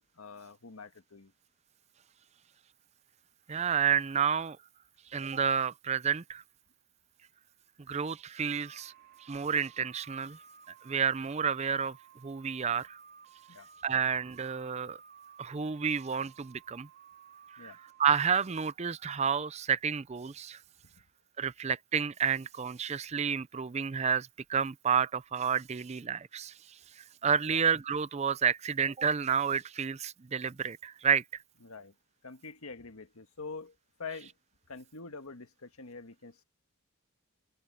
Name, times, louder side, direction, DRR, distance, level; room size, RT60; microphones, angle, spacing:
voice 1, 0.0-1.3 13.5-13.7 17.6-17.8 20.9-21.0 27.5-27.6 31.6-31.9 32.2-34.3 34.7-36.4, left 4 dB, 85° left, 1.5 m, -45 dB
voice 2, 3.5-4.6 5.1-6.4 7.9-8.9 9.3-10.4 10.8-12.0 12.2-13.0 13.8-15.0 15.4-16.9 17.6-20.6 21.4-26.5 27.2-31.2, right 7 dB, 30° right, 0.4 m, -30 dB
sound 1, 8.4-18.0, right 7 dB, 45° right, 4.2 m, -56 dB
head